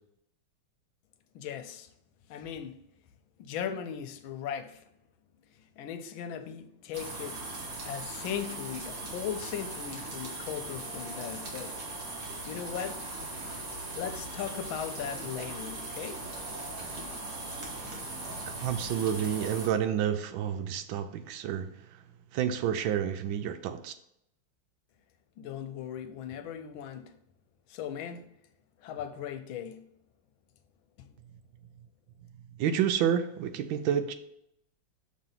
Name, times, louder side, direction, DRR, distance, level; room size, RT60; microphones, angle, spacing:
voice 1, 1.3-1.9 2.3-2.9 3.4-4.8 5.8-7.5 7.8-11.8 12.5-13.0 13.9-16.2 25.4-27.2 27.7-28.2 28.8-29.9 31.0-31.1, left 8 dB, 90° left, 1.4 m, -38 dB
sound 1, 6.9-19.7, right 2 dB, 50° right, 1.6 m, -39 dB
voice 2, 18.4-22.0 22.3-23.9 32.6-34.1, right 9 dB, 80° right, 1.3 m, -29 dB
6.5 x 3.1 x 5.7 m
omnidirectional pair, 2.2 m